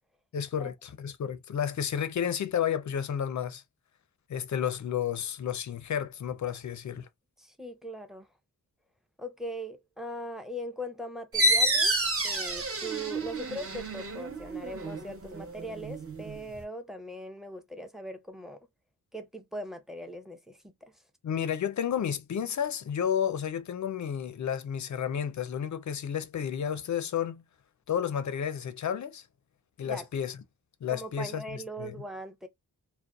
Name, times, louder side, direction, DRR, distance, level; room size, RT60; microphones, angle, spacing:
voice 1, 0.3-3.6 4.3-7.1 21.2-27.4 27.9-29.3 29.8-30.4 30.8-31.4 31.8-32.0, left 8 dB, 50° left, 0.5 m, -31 dB
voice 2, 7.4-8.3 9.2-12.0 12.2-18.6 19.1-21.0 29.8-30.1 30.9-32.5, equal, ahead, 0.6 m, -40 dB
sound 1, 11.3-16.6, right 1 dB, 40° right, 0.8 m, -29 dB
2.5 x 2.1 x 2.3 m
cardioid pair, 60°, 36 cm